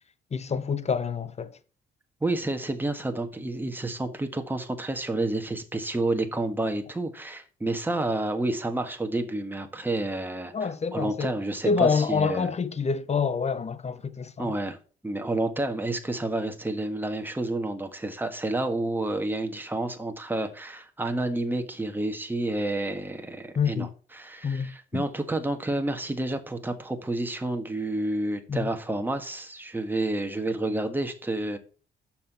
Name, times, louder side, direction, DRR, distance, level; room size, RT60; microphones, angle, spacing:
voice 1, 0.3-1.5 10.5-11.3 11.6-14.5 23.6-23.9 24.4-25.0 28.5-28.7, left 5 dB, 35° left, 0.9 m, -27 dB
voice 2, 2.2-12.5 14.4-14.8 15.0-31.6, right 2 dB, 10° right, 1.5 m, -30 dB
6.7 x 5.9 x 6.6 m
cardioid pair, 90°, 20 cm